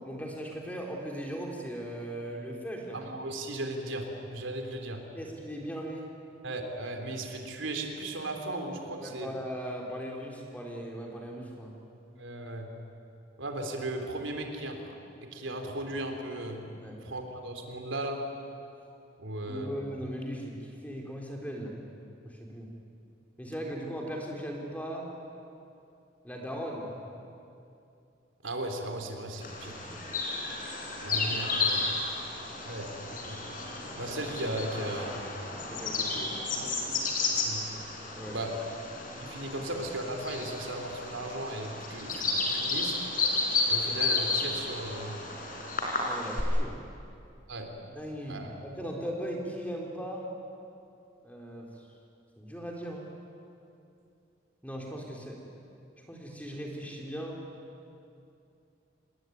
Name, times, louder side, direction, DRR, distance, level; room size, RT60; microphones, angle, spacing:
voice 1, 0.0-3.0 5.1-6.0 9.0-11.7 16.8-17.0 19.5-20.6 20.8-21.7 22.2-22.7 23.4-25.1 26.2-27.1 29.8-30.0 31.2-31.8 35.7-36.3 38.2-38.4 46.0-46.8 47.9-50.3 51.2-51.7 52.4-53.1 54.6-55.4 56.1-57.4, equal, 10° left, -1 dB, 3.6 m, -38 dB
voice 2, 2.9-5.0 6.4-9.3 12.2-12.7 13.4-15.0 15.2-16.7 17.0-18.2 19.2-19.7 28.4-29.8 31.0-31.8 32.6-32.9 33.2-33.4 34.0-35.2 36.1-37.0 37.2-37.6 38.3-38.5 39.2-43.0 43.7-45.2 47.5-47.7 48.3-48.6, right 1 dB, 85° right, 4 dB, 3.7 m, -36 dB
Bird vocalization bird call bird song, 29.4-46.4, left 3 dB, 45° left, 4.8 m, -32 dB
27.5 x 20.5 x 9.4 m, 2.6 s
head